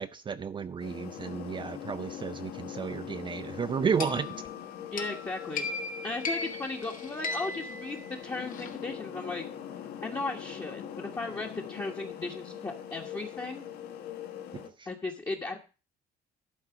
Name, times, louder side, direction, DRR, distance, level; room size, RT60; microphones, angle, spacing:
voice 1, 0.0-4.4 14.5-14.9, right 6 dB, 30° right, 0.5 m, -32 dB
sound 1, 0.8-14.7, left 9 dB, 75° left, 1.2 m, -42 dB
sound 2, 4.0-8.7, left 3 dB, 50° left, 1.4 m, -38 dB
voice 2, 4.9-5.6 6.0-9.4 10.0-13.6 14.9-15.6, left 3 dB, 20° left, 1.3 m, -36 dB
11.5 x 4.1 x 7.1 m
cardioid pair, 110°, 17 cm